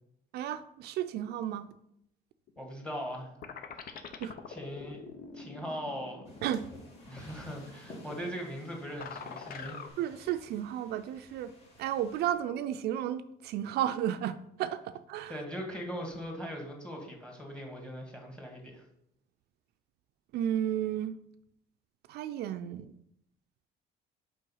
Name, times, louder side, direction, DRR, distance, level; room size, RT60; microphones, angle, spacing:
voice 1, 0.3-1.7 4.2-4.3 6.4-6.6 10.0-11.5 11.8-15.3 20.3-21.2 22.1-22.9, right 11 dB, 75° right, 0.4 m, -33 dB
sound 1, 2.5-3.2 3.4-9.9, left 6 dB, 60° left, 0.8 m, -46 dB
voice 2, 2.6-3.3 3.7-4.0 4.5-5.0 5.3-6.2 7.1-9.8 15.3-18.8, equal, 5° left, 1.9 m, -40 dB
sound 2, 6.2-12.3, left 1 dB, 40° left, 2.2 m, -53 dB
5.4 x 4.6 x 5.6 m
cardioid pair, 110°, 17 cm